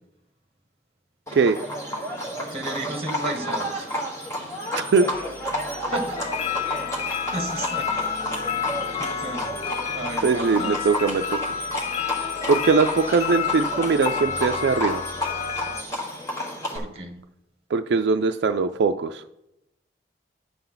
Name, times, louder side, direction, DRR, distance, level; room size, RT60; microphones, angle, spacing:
Livestock farm animals working animals, 1.3-16.8, left 1 dB, 15° left, 1.6 m, -31 dB
voice 1, 2.5-3.9 4.5-4.6 5.8-6.2 7.1-8.2 8.7-9.5 9.9-10.9 16.7-17.2, right 2 dB, 35° right, 3 dB, 1.5 m, -33 dB
voice 2, 4.7-5.1 10.2-11.6 12.5-15.0 17.7-19.2, right 4 dB, 75° right, 8 dB, 0.4 m, -21 dB
sound 1, 5.1-15.8, left 7 dB, 30° left, 0.4 m, -30 dB
11.0 x 7.0 x 3.9 m, 0.86 s
head